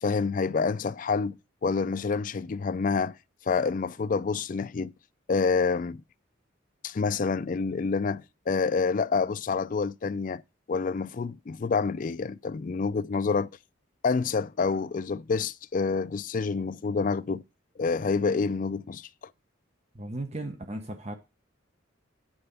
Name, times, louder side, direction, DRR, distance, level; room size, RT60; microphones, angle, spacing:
voice 1, 0.0-1.3 1.6-3.1 3.5-4.9 5.3-6.0 6.8-10.4 10.7-13.5 14.0-17.4 17.8-19.1, left 4 dB, 40° left, 0.4 m, -27 dB
voice 2, 19.9-21.1, right 1 dB, 35° right, 0.9 m, -36 dB
8.8 x 4.3 x 6.7 m
head